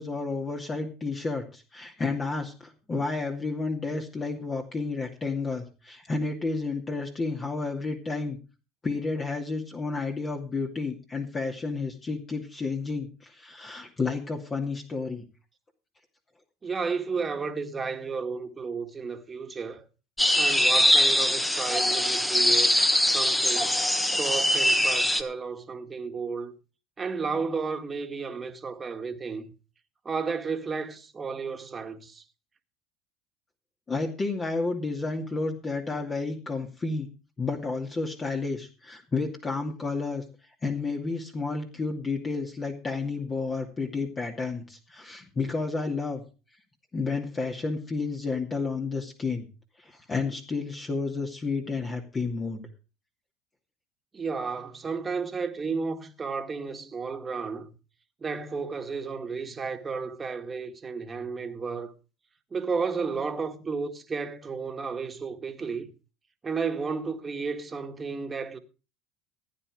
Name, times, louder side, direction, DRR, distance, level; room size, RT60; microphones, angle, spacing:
voice 1, 0.0-8.4 8.8-15.2 33.9-37.1 37.4-40.2 40.6-46.2 46.9-49.5 49.8-52.7, left 3 dB, 25° left, 2.5 m, -31 dB
voice 2, 16.6-19.9 20.4-22.8 23.0-23.8 24.1-26.5 27.0-29.5 30.1-32.2 54.1-57.8 58.2-61.9 62.5-65.9 66.4-68.6, right 5 dB, 25° right, 1.9 m, -33 dB
sound 1, 20.2-25.2, left 1 dB, 10° left, 1.5 m, -22 dB
15.5 x 9.7 x 5.0 m
hypercardioid pair, 85°, 0 cm